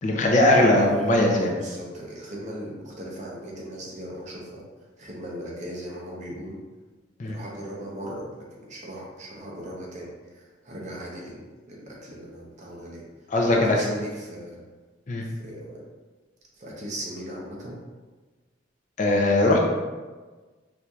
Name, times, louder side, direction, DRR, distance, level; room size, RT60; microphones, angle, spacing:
voice 1, 0.0-1.5 7.2-7.4 13.3-13.8 15.1-15.2 19.0-19.6, left 1 dB, 40° left, -1 dB, 0.5 m, -20 dB
voice 2, 0.5-4.6 5.0-6.6 7.2-13.1 13.4-14.6 15.2-15.9 16.5-17.8, right 1 dB, 40° right, -3 dB, 0.7 m, -38 dB
4.3 x 2.6 x 2.3 m, 1.3 s
head